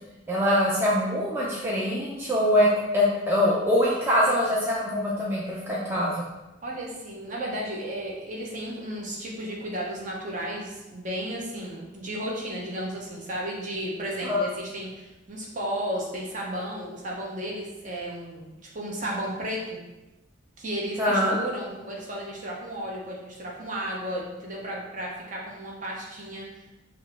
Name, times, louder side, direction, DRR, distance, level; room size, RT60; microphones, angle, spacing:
voice 1, 0.3-6.2 14.2-14.4 21.0-21.4, left 1 dB, 10° right, -6 dB, 0.4 m, -23 dB
voice 2, 6.6-19.8 20.6-26.7, right 1 dB, 40° right, -3 dB, 0.8 m, -34 dB
5.1 x 2.0 x 3.4 m, 1.0 s
head